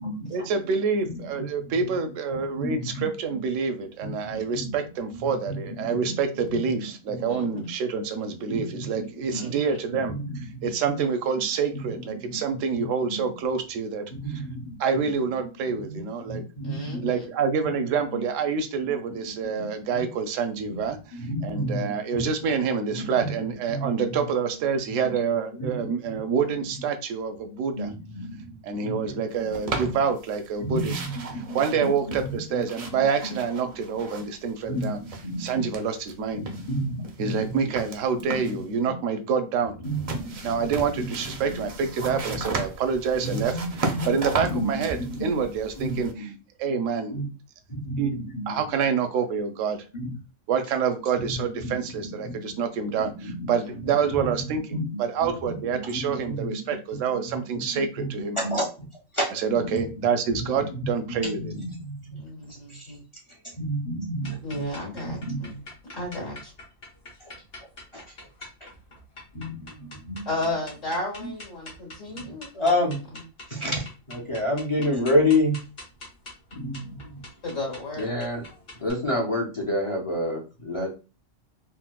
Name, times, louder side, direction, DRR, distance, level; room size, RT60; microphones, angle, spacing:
voice 1, 0.3-14.4 14.8-16.4 17.0-21.0 21.4-27.9 28.6-30.9 31.5-35.0 35.4-36.4 37.2-39.8 40.4-43.5 44.1-46.3 46.6-47.2 48.0-48.1 48.5-49.8 50.5-58.4 59.3-61.5, right 6 dB, 80° right, 7 dB, 0.9 m, -27 dB
voice 2, 1.0-1.8 2.6-3.4 4.0-4.7 5.5-6.1 6.5-7.7 8.5-8.9 9.2-9.4 9.9-11.0 11.7-12.9 13.2-13.3 14.1-14.7 15.0-15.1 15.4-16.0 16.3-17.1 17.6-17.7 19.5-20.0 21.1-22.3 22.9-23.3 23.7-24.1 25.0-25.1 25.6-26.2 26.7-26.8 27.7-28.5 28.8-29.2 29.6-29.9 30.6-32.6 33.0-33.4 34.7-35.6 36.3-37.7 38.2-38.3 38.8-38.9 39.8-40.7 41.0-41.4 41.6-41.7 42.0-42.5 43.2-45.3 45.8-46.3 47.1-47.3 47.7-48.6 49.9-50.1 51.2-51.4 51.6-52.5 52.8-53.8 54.1-54.4 54.7-55.6 55.8-56.6 57.1-58.9 59.1-59.9 60.4-62.2 62.7-62.9 63.6-64.7 65.0-65.5 67.9-68.0 68.6-68.7 69.3-70.3 71.2-71.3 72.1-73.0 73.5-75.6 76.5-77.2 78.0-78.4 78.8-80.9, equal, 35° left, -2 dB, 0.5 m, -31 dB
voice 3, 7.3-7.6 9.3-9.7 16.6-17.2 53.6-54.1 62.1-63.0 64.4-65.6 65.9-66.5 70.3-72.5 73.1-73.2 77.4-78.1, left 2 dB, 80° left, -2 dB, 2.0 m, -34 dB
sound 1, 29.5-30.5 30.7-34.5 34.7-36.1 36.5-38.7 39.8-46.1, right 3 dB, 60° right, 0.4 m, -35 dB
sound 2, 64.2-78.9, left 2 dB, 55° left, 1.4 m, -45 dB
4.3 x 2.0 x 2.2 m, 0.32 s
omnidirectional pair, 1.3 m